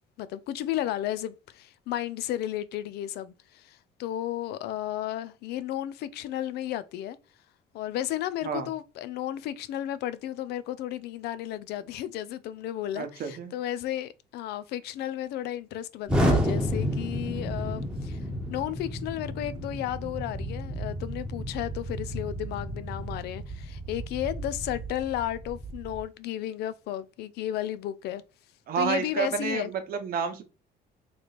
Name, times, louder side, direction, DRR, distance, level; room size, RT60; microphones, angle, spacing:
voice 1, 0.2-7.2 7.7-18.2 18.5-28.2 28.8-29.7, left 12 dB, 75° left, 0.4 m, -33 dB
voice 2, 13.0-13.5 28.7-30.4, right 6 dB, 60° right, 1.0 m, -30 dB
Explosion, 16.1-26.0, equal, 5° right, 1.1 m, -31 dB
3.2 x 3.0 x 4.0 m
cardioid pair, 110°, 17 cm